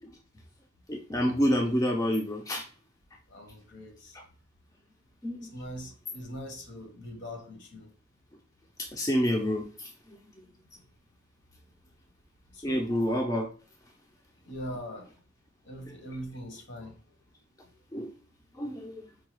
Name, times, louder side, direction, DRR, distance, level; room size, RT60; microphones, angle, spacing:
voice 1, 0.9-2.6 4.1-4.2 5.2-5.5 8.8-9.9 12.6-13.5 17.9-18.1 18.6-19.0, equal, 20° left, 0.4 m, -28 dB
voice 2, 3.3-4.2 5.4-7.9 10.7-10.8 12.5-12.9 14.4-15.1 15.6-17.0 17.6-17.7, equal, 60° left, 1.0 m, -42 dB
4.7 x 2.2 x 2.9 m
head